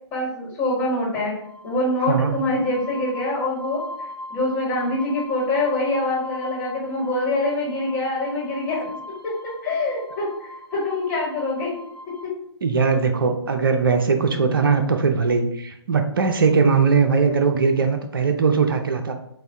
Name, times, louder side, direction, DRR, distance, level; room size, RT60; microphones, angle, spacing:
voice 1, 0.1-1.4 1.6-8.8 9.2-11.7 12.1-12.3, left 2 dB, 15° left, -5 dB, 1.8 m, -25 dB
sound 1, 1.4-12.3, left 1 dB, 65° right, 1.6 m, -39 dB
voice 2, 12.6-19.2, right 5 dB, 50° right, 6 dB, 0.7 m, -20 dB
7.7 x 2.7 x 4.6 m, 0.73 s
figure-of-eight pair, 135°, 15 cm